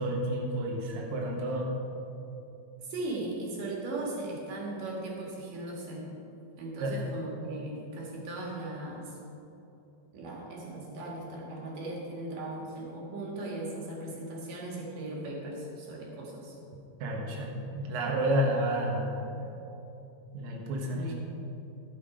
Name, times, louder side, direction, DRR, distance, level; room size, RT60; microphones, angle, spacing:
voice 1, 0.0-1.7 6.8-7.0 17.0-19.5 20.3-21.1, right 1 dB, 85° right, -1 dB, 1.6 m, -30 dB
voice 2, 2.8-6.1 6.6-9.2 10.1-16.6 20.9-21.1, right 2 dB, 55° right, -3 dB, 2.9 m, -38 dB
12.5 x 7.4 x 4.9 m, 2.9 s
omnidirectional pair, 5.4 m